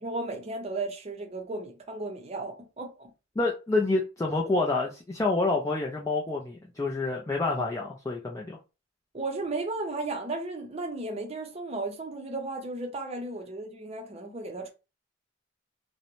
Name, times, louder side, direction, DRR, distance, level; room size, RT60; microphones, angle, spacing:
voice 1, 0.0-3.1 9.1-14.7, right 2 dB, 30° right, 0.5 m, -34 dB
voice 2, 3.4-8.6, left 3 dB, 15° left, 0.3 m, -28 dB
2.5 x 2.1 x 2.9 m
head